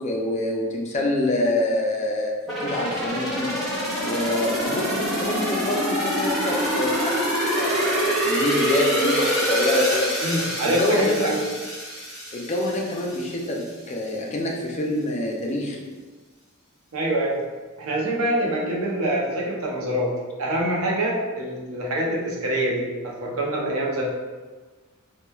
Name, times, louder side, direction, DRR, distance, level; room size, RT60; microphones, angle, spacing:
voice 1, 0.0-2.3 2.6-3.5 4.0-10.1 10.6-11.4 12.3-15.8, left 1 dB, 30° left, -1 dB, 0.4 m, -26 dB
sound 1, 2.5-13.2 13.6-13.7, equal, ahead, 0.9 m, -25 dB
voice 2, 10.2-11.4 16.9-17.4 17.8-20.1 20.4-24.0, right 1 dB, 70° right, -3 dB, 0.6 m, -25 dB
3.0 x 2.2 x 2.2 m, 1.3 s
head